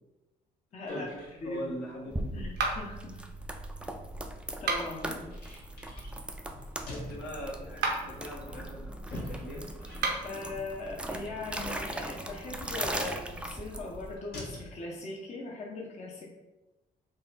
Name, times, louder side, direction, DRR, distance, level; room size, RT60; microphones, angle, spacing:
voice 1, 0.7-1.1 1.4-1.6 2.3-3.2 4.6-5.4 10.2-16.4, left 3 dB, 40° left, -2 dB, 0.8 m, -40 dB
sound 1, 0.9-14.7, left 1 dB, 65° left, 1.3 m, -49 dB
voice 2, 1.4-2.4 6.9-9.7, equal, 80° left, -4 dB, 1.3 m, -41 dB
sound 2, 2.1-14.2, right 1 dB, 5° right, 0.4 m, -39 dB
sound 3, 2.6-3.1 4.5-5.1 7.7-8.2 9.9-10.4, right 3 dB, 85° right, 0.8 m, -32 dB
3.9 x 2.3 x 4.0 m, 1.0 s
cardioid pair, 80°, 17 cm